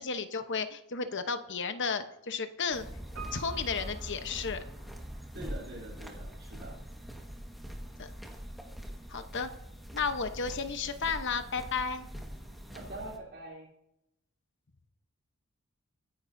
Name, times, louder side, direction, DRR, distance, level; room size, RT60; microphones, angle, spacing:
voice 1, 0.0-2.8 3.3-4.6 9.1-9.5 9.9-12.1, left 5 dB, 60° left, 8 dB, 1.0 m, -33 dB
sound 1, 2.7-13.2, equal, ahead, 1.6 m, -43 dB
Piano, 3.1-5.2 5.5-5.6, right 6 dB, 70° right, 4.1 m, -48 dB
voice 2, 5.3-6.8 12.7-13.7, right 1 dB, 55° right, -6 dB, 3.7 m, -44 dB
23.0 x 10.0 x 2.7 m, 0.84 s
head